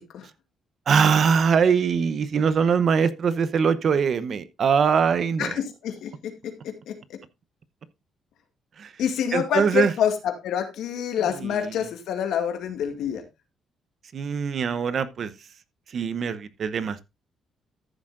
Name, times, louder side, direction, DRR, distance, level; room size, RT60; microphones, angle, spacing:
voice 1, 0.9-5.6 8.8-8.9 9.3-9.9 11.3-11.8 14.1-15.3 15.9-17.0, right 6 dB, 55° right, 0.8 m, -22 dB
voice 2, 5.4-6.9 9.0-13.2, left 8 dB, 80° left, 2.0 m, -27 dB
14.0 x 7.3 x 2.5 m
cardioid pair, 90°, 0 cm